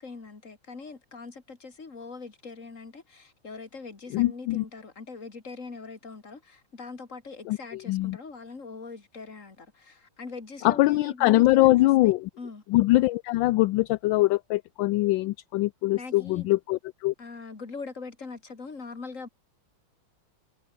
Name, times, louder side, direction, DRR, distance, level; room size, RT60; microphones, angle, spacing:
voice 1, 0.0-12.6 15.9-16.5 17.2-19.3, left 4 dB, 40° left, 3.1 m, -42 dB
voice 2, 4.1-4.6 7.5-8.2 10.6-12.3 12.7-17.1, left 18 dB, 75° left, 1.2 m, -23 dB
omnidirectional pair, 2.2 m